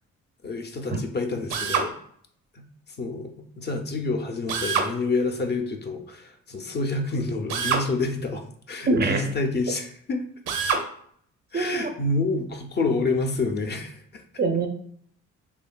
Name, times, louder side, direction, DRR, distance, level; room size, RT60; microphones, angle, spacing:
voice 1, 0.4-1.9 2.9-3.3 3.6-10.2 11.5-14.2, left 3 dB, 35° left, 4 dB, 0.4 m, -28 dB
Drill, 1.5-1.9 4.5-4.9 7.5-7.9 10.5-10.9, right 5 dB, 85° right, 0.5 m, -25 dB
voice 2, 8.9-9.3 11.5-11.9 14.4-14.7, right 3 dB, 35° right, 6 dB, 0.4 m, -23 dB
3.1 x 2.2 x 2.2 m, 0.63 s
cardioid pair, 90°, 30 cm